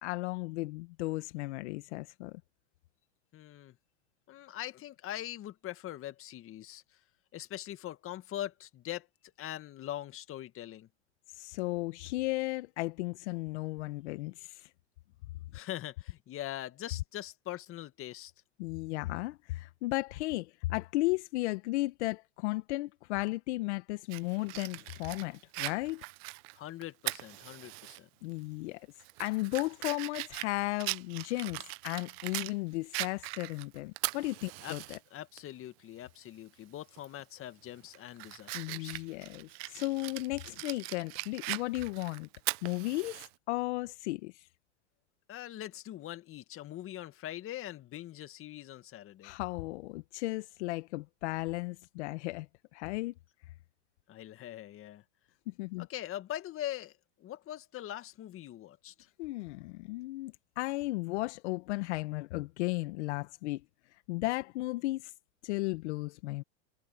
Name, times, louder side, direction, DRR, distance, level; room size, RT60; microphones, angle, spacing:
voice 1, 0.0-2.4 11.3-14.7 18.6-26.0 28.2-28.9 29.2-35.0 38.5-42.3 42.6-44.5 49.2-52.5 52.7-53.1 55.5-55.9 59.2-63.6 64.1-65.1 65.4-66.4, left 20 dB, 65° left, 1.4 m, -35 dB
voice 2, 3.3-3.8 4.3-6.8 7.3-9.1 9.4-10.9 15.5-18.3 26.5-28.1 34.6-39.0 39.6-39.7 45.3-49.3 54.1-55.0 55.8-59.1, left 13 dB, 35° left, 2.0 m, -42 dB
Fire, 24.1-28.0 28.4-28.5 29.0-32.5 32.9-35.0 35.4-35.5 37.0-37.2 37.7-43.3, right 26 dB, 55° right, 1.0 m, -40 dB
hypercardioid pair, 110°, 36 cm